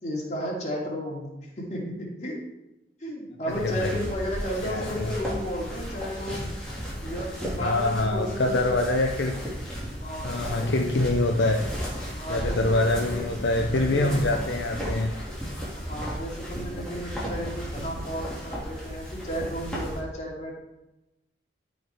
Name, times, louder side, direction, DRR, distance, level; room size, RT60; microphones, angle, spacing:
voice 1, 0.0-2.4 3.0-6.6 7.0-8.9 10.0-10.3 12.1-13.3 13.8-14.3 15.8-20.6, equal, 40° left, -3 dB, 2.5 m, -34 dB
sound 1, 3.5-20.0, equal, 5° left, 2.5 m, -34 dB
voice 2, 4.6-5.1 7.6-9.4 10.2-11.7 12.3-15.1, left 2 dB, 75° left, 3 dB, 0.7 m, -25 dB
13.0 x 4.7 x 4.9 m, 0.97 s
head